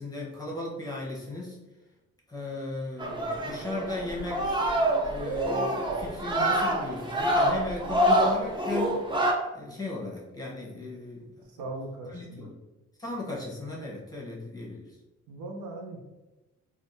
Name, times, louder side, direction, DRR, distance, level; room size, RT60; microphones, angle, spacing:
voice 1, 0.0-1.6 2.3-4.8 5.0-9.0 9.5-11.3 12.1-12.5 13.0-15.0, left 2 dB, 10° left, -4 dB, 1.0 m, -36 dB
sound 1, 3.0-9.3, right 1 dB, 15° right, 0.6 m, -26 dB
voice 2, 11.5-12.5 15.3-16.0, right 2 dB, 80° right, 1 dB, 0.7 m, -39 dB
3.4 x 2.4 x 2.7 m, 1.1 s
cardioid pair, 90°, 30 cm